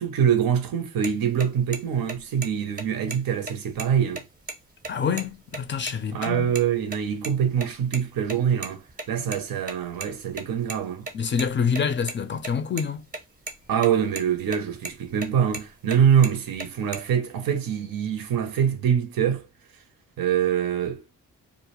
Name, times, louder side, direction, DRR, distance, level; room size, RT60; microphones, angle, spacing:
voice 1, 0.0-4.3 6.1-11.1 13.7-19.5 20.2-21.0, right 8 dB, 85° right, 0.6 m, -24 dB
sound 1, 1.0-1.1 1.4-1.5 1.7-1.8 2.1-2.5 2.8-2.9 3.1-3.2 3.5-4.5 4.8-4.9 5.2-5.3 5.5-5.9 6.2-6.6 6.9-8.0 8.2-10.8 11.1-12.8 13.1-13.2 13.5-13.9 14.1-14.6 14.8-16.0 16.2-17.0, right 3 dB, 25° right, 0.6 m, -35 dB
voice 2, 4.9-6.6 11.1-13.0, left 6 dB, 35° left, 0.4 m, -27 dB
2.3 x 2.0 x 2.9 m
cardioid pair, 85°, 34 cm